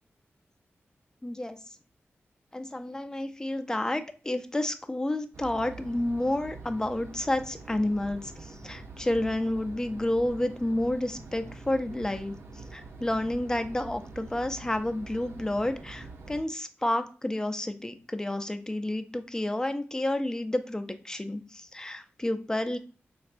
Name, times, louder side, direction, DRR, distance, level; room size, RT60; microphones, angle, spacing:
voice 1, 1.2-1.6 2.5-12.4 12.7-22.8, left 1 dB, 15° left, 8 dB, 0.4 m, -30 dB
sound 1, 5.3-16.4, right 3 dB, 70° right, 0.6 m, -45 dB
4.4 x 2.2 x 2.4 m, 0.36 s
wide cardioid pair, 95°, 4 cm